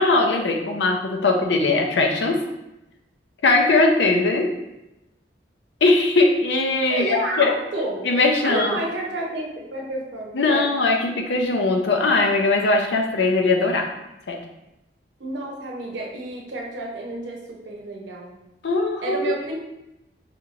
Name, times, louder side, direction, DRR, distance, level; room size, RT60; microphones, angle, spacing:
voice 1, 0.0-2.4 3.4-4.5 5.8-7.5 8.0-8.8 10.3-13.9 14.3-14.4 18.6-19.4, left 3 dB, 80° left, 2 dB, 0.6 m, -20 dB
voice 2, 6.9-8.0 8.4-10.7 15.2-18.4 19.0-19.6, right 2 dB, 85° right, -2 dB, 0.8 m, -30 dB
4.3 x 2.8 x 2.5 m, 0.92 s
head